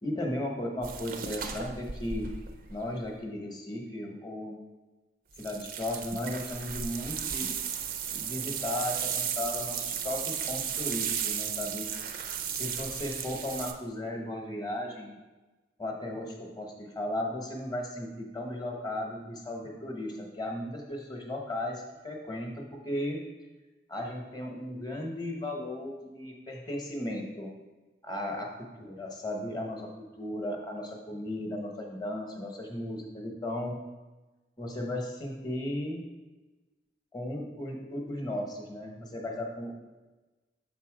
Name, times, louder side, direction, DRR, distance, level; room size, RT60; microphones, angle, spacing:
voice 1, 0.0-2.3 2.7-4.6 5.4-7.5 8.1-11.8 12.6-15.2 15.8-23.2 23.9-27.5 28.0-28.5 28.8-33.8 34.6-36.0 37.1-39.7, left 1 dB, 20° left, 1 dB, 0.9 m, -35 dB
sound 1, 0.8-3.1 5.4-13.7, right 8 dB, 45° right, 0.5 m, -35 dB
6.8 x 4.1 x 4.9 m, 1.2 s
head